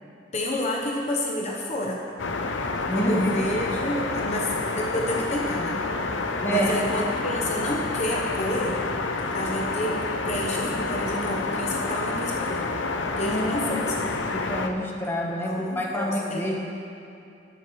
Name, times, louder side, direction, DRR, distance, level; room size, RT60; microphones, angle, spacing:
voice 1, 0.3-2.1 2.8-8.9 9.3-12.7 13.2-14.1 15.0-16.5, left 1 dB, 35° left, -2 dB, 1.0 m, -30 dB
sound 1, 2.2-14.7, left 3 dB, 70° left, 0.7 m, -29 dB
voice 2, 2.9-3.2 6.4-6.7 13.2-13.7 14.3-16.6, equal, 15° left, -2 dB, 1.2 m, -27 dB
19.5 x 7.4 x 3.2 m, 2.6 s
head